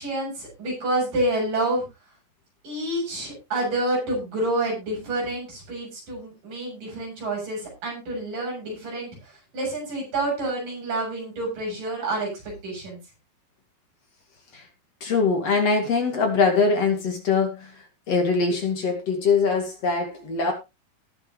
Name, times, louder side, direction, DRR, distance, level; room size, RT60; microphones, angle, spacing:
voice 1, 0.0-1.8 2.6-13.0, right 1 dB, 70° right, -2 dB, 9.3 m, -28 dB
voice 2, 15.0-17.7 18.1-20.5, left 4 dB, 50° left, 3 dB, 3.3 m, -22 dB
18.5 x 7.5 x 3.1 m, 0.25 s
omnidirectional pair, 3.9 m